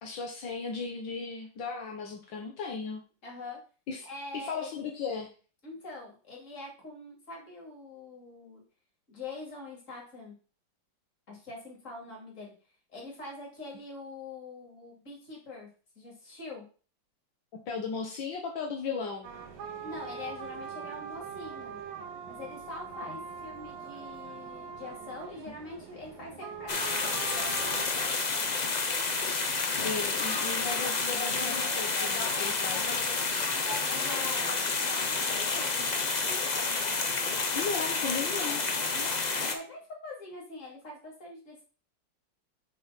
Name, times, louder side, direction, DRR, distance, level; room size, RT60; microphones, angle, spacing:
voice 1, 0.0-3.0 3.9-4.1 4.3-5.3 17.7-19.3 23.1-23.2 29.8-33.0 37.5-38.6, left 5 dB, 80° left, 0 dB, 1.7 m, -36 dB
voice 2, 3.2-3.6 4.0-4.7 5.6-8.6 9.1-10.3 11.3-12.5 12.9-15.7 16.0-16.6 19.8-21.8 22.2-28.5 33.5-36.5 38.9-41.6, left 2 dB, 40° left, -1 dB, 2.7 m, -44 dB
sound 1, 19.2-27.9, right 6 dB, 90° right, 1.9 m, -42 dB
sound 2, 26.7-39.5, left 4 dB, 60° left, 0.4 m, -29 dB
6.7 x 3.5 x 5.7 m, 0.38 s
omnidirectional pair, 2.0 m